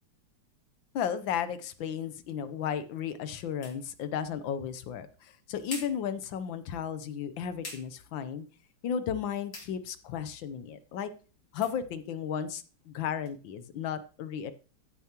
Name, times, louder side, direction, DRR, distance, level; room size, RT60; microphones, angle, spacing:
voice 1, 0.9-8.5 8.8-11.1 11.5-14.5, left 8 dB, 80° left, 12 dB, 1.5 m, -34 dB
sound 1, 1.9-13.4, left 2 dB, 60° left, 3.4 m, -51 dB
14.5 x 7.0 x 2.9 m, 0.37 s
omnidirectional pair, 2.1 m